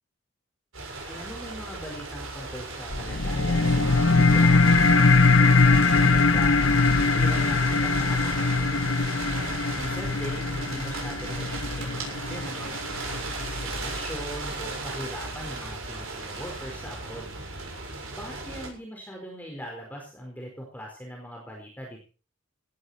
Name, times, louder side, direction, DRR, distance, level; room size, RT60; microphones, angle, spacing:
sound 1, 0.7-18.7, right 2 dB, 80° right, 7.2 m, -35 dB
voice 1, 1.1-9.0 9.8-17.3 18.1-22.0, equal, 10° left, 0 dB, 4.5 m, -40 dB
sound 2, 2.9-13.9, left 3 dB, 85° left, 1.4 m, -22 dB
17.0 x 15.0 x 4.3 m, 0.38 s
head